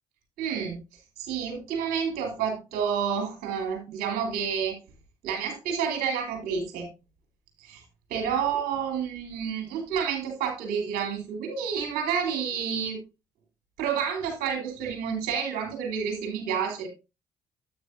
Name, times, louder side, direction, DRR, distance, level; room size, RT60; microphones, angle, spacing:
voice 1, 0.4-0.8 1.2-4.8 5.2-6.9 7.6-7.8 8.1-13.0 13.8-16.9, right 7 dB, 75° right, 3 dB, 3.4 m, -29 dB
9.3 x 8.7 x 2.6 m, 0.26 s
hypercardioid pair, 50°, 16 cm